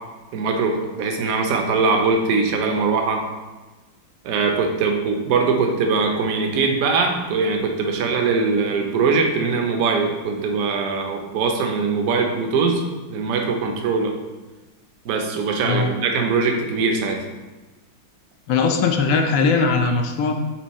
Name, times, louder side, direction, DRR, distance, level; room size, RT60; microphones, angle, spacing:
voice 1, 0.3-3.2 4.2-12.8 13.1-14.1 15.0-17.2, right 4 dB, 60° right, 3 dB, 1.0 m, -21 dB
voice 2, 18.5-20.3, left 4 dB, 70° left, 4 dB, 0.8 m, -19 dB
6.2 x 3.7 x 4.1 m, 1.2 s
omnidirectional pair, 2.0 m